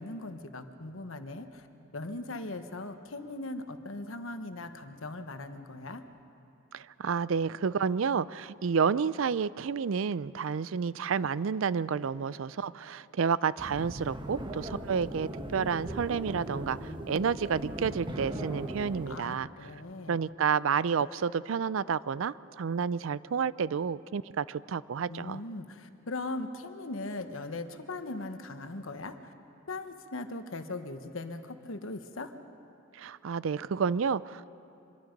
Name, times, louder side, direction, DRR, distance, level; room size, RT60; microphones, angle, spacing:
voice 1, 0.0-1.7 1.9-6.0 19.1-20.2 25.1-29.3 29.7-32.3, left 2 dB, 75° left, 8 dB, 1.2 m, -39 dB
voice 2, 6.7-19.5 20.1-25.4 32.9-34.5, right 6 dB, 70° right, 18 dB, 0.4 m, -30 dB
sound 1, 13.6-19.2, right 1 dB, 25° right, 1.3 m, -39 dB
25.5 x 22.5 x 5.3 m, 2.9 s
head